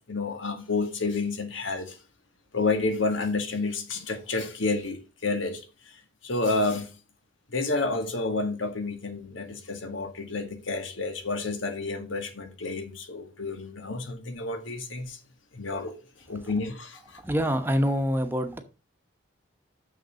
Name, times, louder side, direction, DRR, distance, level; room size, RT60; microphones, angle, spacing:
voice 1, 0.0-2.0 2.5-5.6 6.2-6.9 7.5-15.2 15.5-15.9 16.3-17.2, left 3 dB, 85° left, 1.9 m, -30 dB
voice 2, 17.2-18.6, equal, 10° right, 1.0 m, -25 dB
6.7 x 6.6 x 6.5 m
head